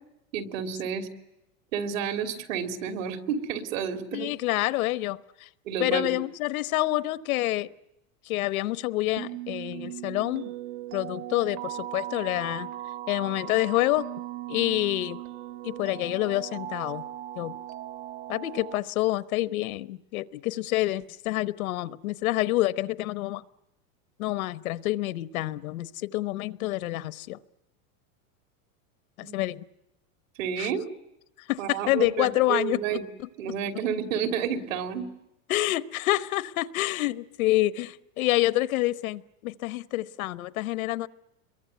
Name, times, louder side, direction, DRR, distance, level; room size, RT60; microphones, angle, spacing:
voice 1, 0.3-1.1 1.7-4.3 5.6-6.2 29.2-29.4 30.4-30.9 31.6-33.0 33.4-35.1, right 7 dB, 65° right, 6 dB, 3.4 m, -30 dB
voice 2, 4.1-5.5 5.8-7.7 8.3-10.5 10.9-12.7 13.1-14.1 14.5-15.2 15.6-17.0 17.4-17.6 18.3-23.4 24.2-27.4 29.2-29.7 30.6-30.7 31.5-33.0 35.5-41.1, left 17 dB, 80° left, 15 dB, 1.1 m, -27 dB
sound 1, 9.2-18.8, right 13 dB, 50° right, 1.5 m, -38 dB
28.0 x 23.0 x 9.3 m, 0.88 s
supercardioid pair, 165°, 42 cm